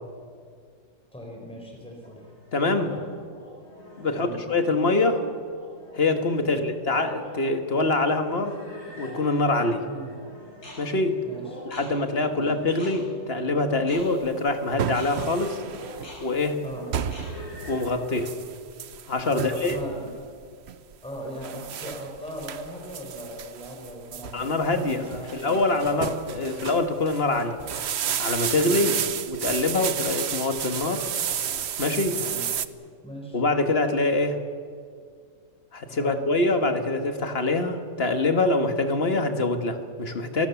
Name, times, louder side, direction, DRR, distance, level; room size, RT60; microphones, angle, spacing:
voice 1, 1.1-2.2 4.0-4.4 6.4-6.6 9.9-10.1 11.3-11.6 12.2-12.4 16.6-16.9 19.3-20.1 21.0-24.5 24.7-25.7 28.7-29.0 32.2-32.5 33.0-33.4 35.9-36.2, equal, 5° left, 0 dB, 4.5 m, -38 dB
sound 1, 2.0-17.9, left 1 dB, 85° left, 6.7 m, -44 dB
voice 2, 2.5-3.0 4.0-5.2 5.9-8.6 9.0-9.8 10.8-11.2 11.6-15.6 16.2-16.6 17.7-18.3 19.1-19.8 24.3-27.6 28.2-28.9 29.2-31.1 31.8-32.2 33.3-34.4 35.7-40.5, left 2 dB, 40° left, 7 dB, 1.8 m, -24 dB
sound 2, 14.0-32.7, right 8 dB, 55° right, 0.9 m, -32 dB
28.5 x 19.0 x 7.1 m, 2.2 s
omnidirectional pair, 1.6 m